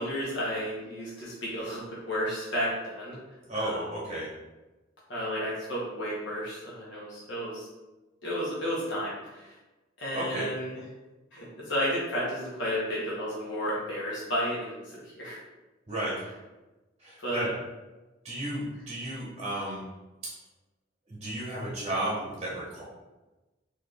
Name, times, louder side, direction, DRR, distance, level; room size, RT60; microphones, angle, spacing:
voice 1, 0.0-3.2 3.5-3.8 5.1-7.7 8.2-9.5 10.0-10.8 11.3-15.4 17.2-17.5, equal, 65° left, -7 dB, 1.1 m, -32 dB
voice 2, 3.5-4.3 10.1-10.5 15.9-16.1 17.0-17.5 18.2-19.8 21.1-22.8, right 1 dB, 30° right, -6 dB, 0.9 m, -33 dB
4.2 x 2.6 x 3.3 m, 1.1 s
head